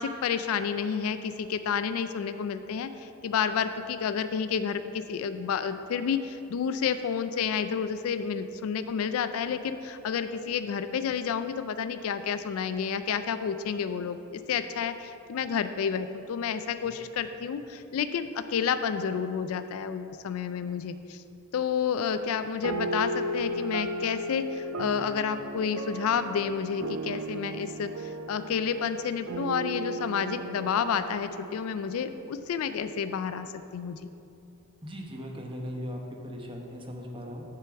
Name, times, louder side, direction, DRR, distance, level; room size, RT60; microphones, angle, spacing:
voice 1, 0.0-21.2 21.5-34.0, left 7 dB, 70° left, 10 dB, 0.3 m, -30 dB
sound 1, 22.6-32.4, right 1 dB, 70° right, 0.4 m, -36 dB
voice 2, 34.8-37.4, equal, 25° right, 1 dB, 0.9 m, -38 dB
7.5 x 4.9 x 6.9 m, 2.8 s
head